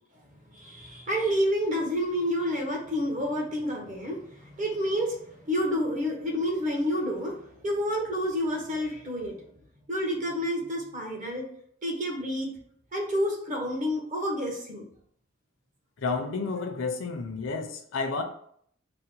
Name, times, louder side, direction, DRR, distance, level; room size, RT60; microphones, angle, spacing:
voice 1, 0.5-9.4 9.9-11.5 11.8-12.5 12.9-14.8, equal, 40° right, -1 dB, 1.1 m, -29 dB
voice 2, 16.0-18.2, left 4 dB, 70° left, 5 dB, 0.6 m, -31 dB
3.9 x 2.1 x 4.4 m, 0.63 s
head